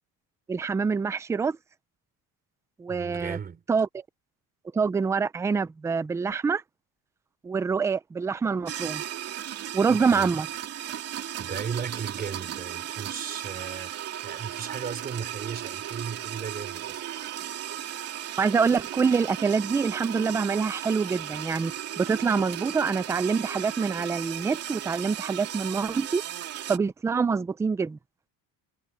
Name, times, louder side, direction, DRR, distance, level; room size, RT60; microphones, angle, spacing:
voice 1, 0.5-1.6 2.8-3.4 3.7-3.9 4.7-6.6 7.4-9.0 9.7-10.5 18.4-26.2 26.7-28.0, right 5 dB, 10° right, 0.3 m, -26 dB
voice 2, 2.9-3.6 9.9-10.4 11.4-17.1, right 6 dB, 25° right, 4.1 m, -36 dB
sound 1, 8.7-26.8, right 11 dB, 40° right, 2.7 m, -36 dB
cardioid pair, 180°, 36 cm